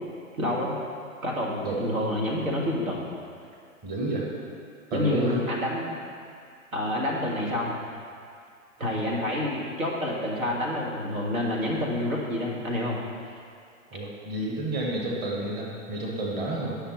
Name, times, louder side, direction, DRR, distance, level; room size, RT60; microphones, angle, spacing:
voice 1, 0.3-0.8 1.2-3.1 4.9-6.0 6.7-7.8 8.8-13.0, left 1 dB, 80° right, -3 dB, 2.0 m, -28 dB
voice 2, 3.8-4.3 4.9-5.4 13.9-16.8, right 1 dB, 25° right, -3 dB, 1.6 m, -30 dB
11.0 x 5.8 x 4.5 m, 2.3 s
figure-of-eight pair, 110°, 40 cm